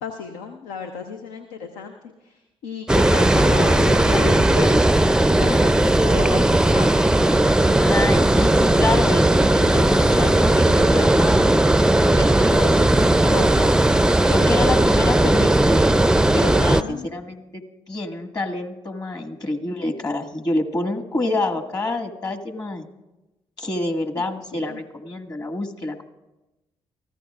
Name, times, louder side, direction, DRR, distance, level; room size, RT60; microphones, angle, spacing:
voice 1, 0.0-4.9 5.4-6.9 16.6-17.2 24.5-24.8, left 6 dB, 85° left, 5 dB, 0.7 m, -33 dB
Water, 2.9-16.8, right 1 dB, 5° right, 0.4 m, -17 dB
voice 2, 7.8-9.3 9.5-11.7 12.0-13.7 14.2-15.9 16.3-17.4 17.9-22.9 23.6-26.0, left 2 dB, 35° left, 4 dB, 1.7 m, -27 dB
24.0 x 15.0 x 2.4 m, 1.0 s
hypercardioid pair, 45°, 12 cm